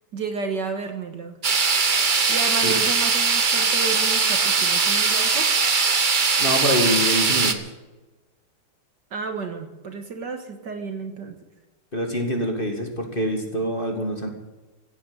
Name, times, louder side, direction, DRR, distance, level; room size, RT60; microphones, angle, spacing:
voice 1, 0.1-1.4 2.3-5.5 9.1-11.4, right 4 dB, 55° right, 6 dB, 1.9 m, -32 dB
sound 1, 1.4-7.5, right 5 dB, 40° right, 0.7 m, -20 dB
voice 2, 6.4-7.7 11.9-14.3, equal, 25° left, 2 dB, 2.1 m, -25 dB
16.0 x 9.3 x 7.9 m, 1.1 s
omnidirectional pair, 2.4 m